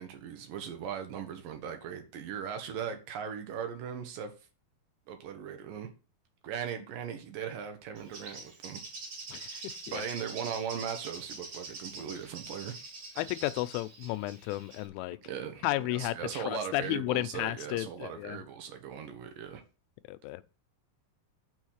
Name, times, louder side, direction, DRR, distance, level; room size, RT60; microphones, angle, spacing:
voice 1, 0.0-4.3 5.1-5.9 6.4-8.8 9.9-12.8 15.2-19.6, right 8 dB, 70° right, 2.2 m, -39 dB
Bird, 7.9-14.9, right 3 dB, 40° right, 2.8 m, -45 dB
voice 2, 9.3-10.0 13.2-15.2 15.6-18.4 20.1-20.4, left 17 dB, 90° left, 3.1 m, -33 dB
7.1 x 6.3 x 6.5 m
omnidirectional pair, 5.5 m